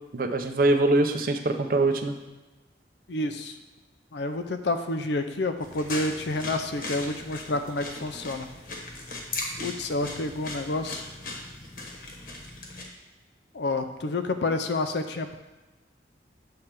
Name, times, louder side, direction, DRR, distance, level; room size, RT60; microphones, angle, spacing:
voice 1, 0.1-2.2, right 2 dB, 50° right, 7 dB, 0.5 m, -23 dB
voice 2, 3.1-3.5 4.1-8.5 9.6-11.0 13.5-15.4, left 2 dB, 70° left, 8 dB, 0.5 m, -29 dB
sound 1, 5.6-12.8, left 2 dB, 50° left, 1.1 m, -38 dB
7.6 x 3.3 x 5.8 m, 1.1 s
head